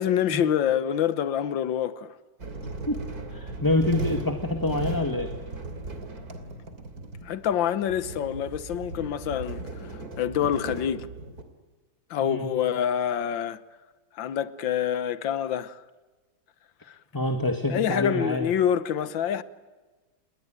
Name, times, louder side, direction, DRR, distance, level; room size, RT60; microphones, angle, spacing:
voice 1, 0.0-2.1 7.3-9.9 10.2-11.1 12.1-13.6 14.2-15.8 16.9-17.0 17.7-19.4, left 9 dB, 75° left, 1.8 m, -26 dB
sound 1, 2.4-11.4, right 2 dB, 50° right, 3.3 m, -37 dB
voice 2, 3.3-5.3 12.2-12.4 17.1-18.5, left 2 dB, 10° left, 1.6 m, -26 dB
29.0 x 22.0 x 9.0 m
omnidirectional pair, 2.1 m